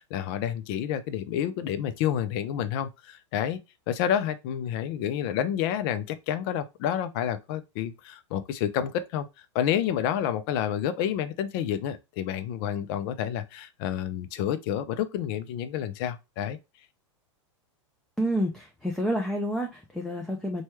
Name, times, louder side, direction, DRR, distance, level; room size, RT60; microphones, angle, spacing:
voice 1, 0.0-3.6 3.9-9.3 9.5-16.6, left 10 dB, 50° left, 0.5 m, -29 dB
voice 2, 18.2-20.6, equal, 5° left, 0.5 m, -29 dB
3.1 x 2.3 x 3.0 m
hypercardioid pair, 110°, 16 cm